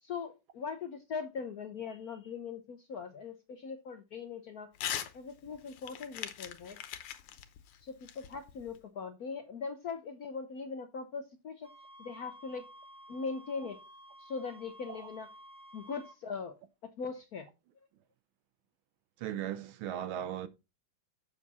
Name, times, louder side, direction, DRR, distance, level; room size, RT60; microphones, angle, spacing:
voice 1, 0.0-4.7 5.1-6.8 7.8-11.7 12.0-12.6 13.1-13.8 14.2-15.3 15.7-16.6 16.8-17.5, left 5 dB, 60° left, 1.0 m, -40 dB
Crumpling crinkling / Tearing, 4.7-5.1 5.5-8.8, left 10 dB, 85° left, 1.8 m, -40 dB
sound 1, 11.6-16.2, equal, 15° left, 1.9 m, -53 dB
voice 2, 19.2-20.5, right 11 dB, 70° right, 1.5 m, -37 dB
7.2 x 7.1 x 4.1 m
omnidirectional pair, 2.4 m